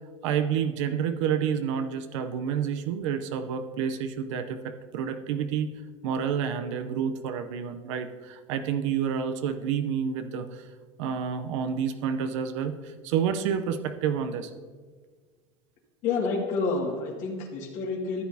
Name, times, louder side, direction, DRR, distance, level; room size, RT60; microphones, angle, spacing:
voice 1, 0.2-5.7 6.0-10.7 11.0-14.5, right 7 dB, 90° right, 8 dB, 0.7 m, -29 dB
voice 2, 16.0-18.2, left 4 dB, 55° left, -1 dB, 2.1 m, -29 dB
14.0 x 8.3 x 2.7 m, 1.5 s
supercardioid pair, 140°, 15 cm